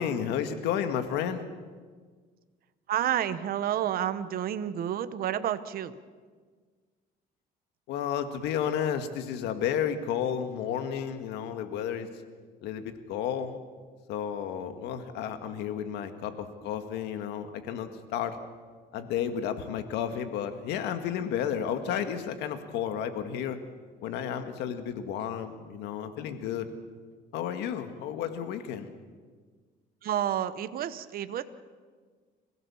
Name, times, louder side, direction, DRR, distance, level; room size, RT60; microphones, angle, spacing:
voice 1, 0.0-1.4 7.9-12.1 12.6-13.6 14.1-18.4 18.9-23.6 24.0-26.7 27.3-28.9, left 8 dB, 90° left, 8 dB, 1.9 m, -32 dB
voice 2, 2.9-6.0 30.0-31.4, right 10 dB, 60° right, 12 dB, 1.1 m, -30 dB
26.5 x 16.5 x 7.2 m, 1.5 s
cardioid pair, 110°, 17 cm